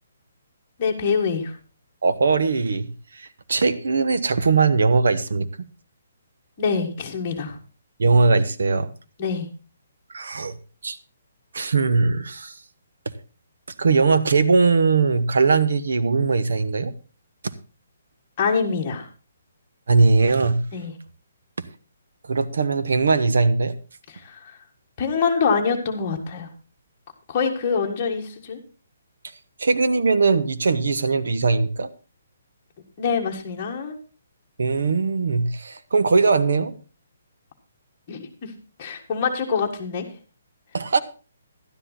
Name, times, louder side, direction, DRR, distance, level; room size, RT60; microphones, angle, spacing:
voice 1, 0.8-1.5 6.6-7.6 9.2-9.5 18.4-19.0 20.7-20.9 24.2-24.6 25.0-26.5 27.3-28.6 33.0-34.0 38.1-38.5 38.8-40.0, left 5 dB, 20° left, 1.6 m, -25 dB
voice 2, 2.0-5.7 8.0-8.9 10.1-10.6 10.8-11.0 11.5-12.6 13.8-16.9 19.9-20.6 22.2-23.7 29.6-31.9 34.6-36.7 40.7-41.0, right 4 dB, 75° right, 1.1 m, -20 dB
12.0 x 10.0 x 4.1 m
hypercardioid pair, 175°, 0 cm